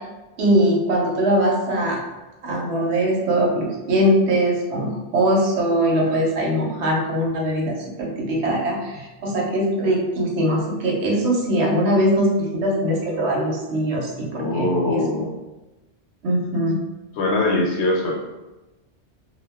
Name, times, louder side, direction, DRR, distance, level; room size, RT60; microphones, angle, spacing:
voice 1, 0.4-2.0 2.4-15.0 16.2-16.8, right 1 dB, 80° right, -2 dB, 0.9 m, -21 dB
voice 2, 14.3-15.3 17.2-18.2, left 2 dB, 85° left, 0 dB, 0.9 m, -22 dB
2.2 x 2.1 x 3.3 m, 1.1 s
omnidirectional pair, 1.1 m